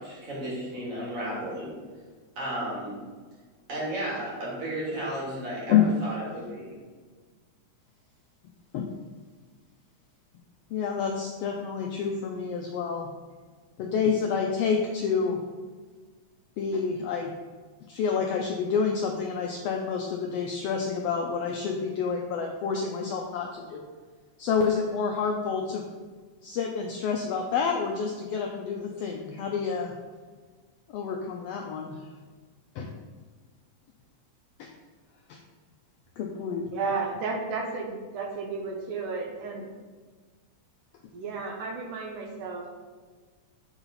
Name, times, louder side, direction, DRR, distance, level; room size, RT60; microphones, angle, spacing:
voice 1, 0.0-1.8 2.4-3.0 3.7-6.8, right 1 dB, 50° right, -6 dB, 3.1 m, -33 dB
voice 2, 10.7-13.1 13.8-15.4 16.6-17.3 17.9-23.8 24.4-25.8 26.4-29.9 30.9-32.0 32.7-32.9 34.6-34.7 35.3-35.4 36.2-36.6, left 6 dB, 85° left, 1 dB, 1.4 m, -28 dB
voice 3, 36.7-39.7 41.1-42.6, right 4 dB, 85° right, 1 dB, 2.5 m, -33 dB
7.0 x 4.0 x 5.8 m, 1.4 s
omnidirectional pair, 3.5 m